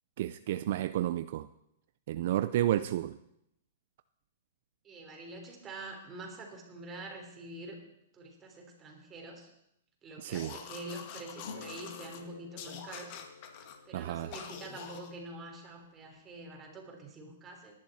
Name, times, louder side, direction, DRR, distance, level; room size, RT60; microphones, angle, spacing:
voice 1, 0.2-1.5 2.1-3.2 10.2-10.5 13.9-14.3, right 12 dB, 55° right, 0.5 m, -31 dB
voice 2, 4.8-7.8 8.1-9.5 10.0-13.2 13.9-17.7, right 2 dB, 20° right, 3.5 m, -46 dB
sound 1, 10.3-12.2 12.6-13.8 14.3-15.1, left 8 dB, 45° left, 1.8 m, -46 dB
sound 2, 11.4-16.6, left 5 dB, 85° left, 2.1 m, -52 dB
19.0 x 11.0 x 4.3 m
hypercardioid pair, 145°, 0 cm